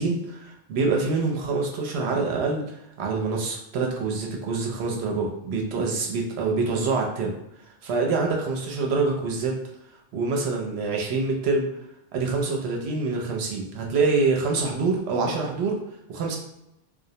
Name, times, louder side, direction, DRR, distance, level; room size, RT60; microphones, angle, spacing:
voice 1, 0.0-7.3 7.8-9.6 10.1-11.7 12.1-15.8 16.1-16.4, right 4 dB, 70° right, 0 dB, 0.8 m, -26 dB
2.3 x 2.0 x 2.7 m, 0.85 s
omnidirectional pair, 1.2 m